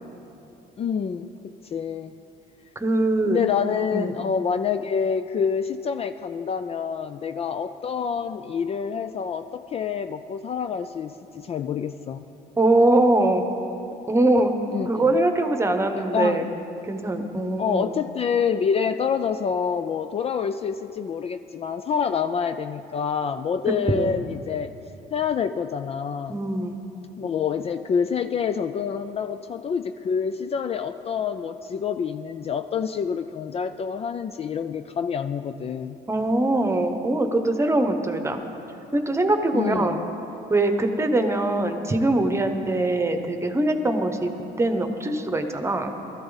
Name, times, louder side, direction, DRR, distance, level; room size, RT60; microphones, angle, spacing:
voice 1, 0.8-1.3 1.6-2.1 3.3-12.3 14.7-15.1 15.9-16.5 17.6-24.7 25.1-26.4 27.2-36.0 39.5-40.1, left 6 dB, 35° left, 10 dB, 0.4 m, -27 dB
voice 2, 2.7-3.4 3.9-4.1 12.6-13.4 14.1-14.5 14.9-16.5 16.8-17.9 23.9-24.1 26.3-26.8 36.1-38.4 38.9-40.0 40.5-44.3 44.6-45.9, right 2 dB, 15° right, 6 dB, 1.1 m, -22 dB
19.0 x 13.5 x 4.0 m, 2.9 s
cardioid pair, 110°, 17 cm